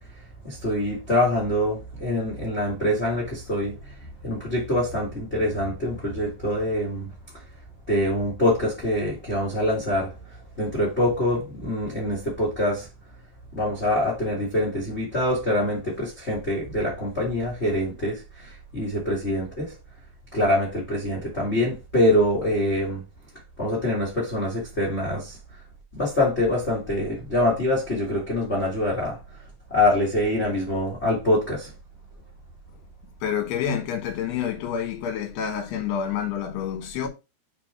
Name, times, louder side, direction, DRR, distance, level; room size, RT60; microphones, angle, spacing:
voice 1, 0.4-3.9 4.2-7.1 7.9-10.1 10.6-12.9 13.5-19.7 20.3-23.0 23.6-25.4 25.9-29.2 29.7-31.7, left 1 dB, 60° left, 0.7 m, -25 dB
voice 2, 33.2-37.1, left 8 dB, 80° left, 3.3 m, -28 dB
5.5 x 4.5 x 4.4 m
omnidirectional pair, 4.8 m